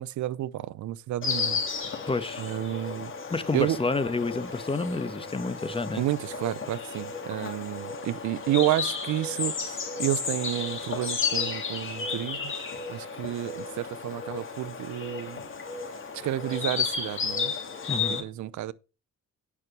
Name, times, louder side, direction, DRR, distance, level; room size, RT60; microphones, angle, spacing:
voice 1, 0.0-1.6 2.4-3.1 3.5-3.8 6.0-12.5 12.9-15.4 16.1-17.5 18.1-18.7, right 14 dB, 70° right, 0.6 m, -30 dB
Insect, 1.2-18.2, left 5 dB, 40° left, 3.3 m, -33 dB
voice 2, 2.1-2.4 3.3-6.0 17.9-18.2, left 3 dB, 20° left, 1.2 m, -29 dB
9.8 x 6.1 x 6.0 m
cardioid pair, 90°, 30 cm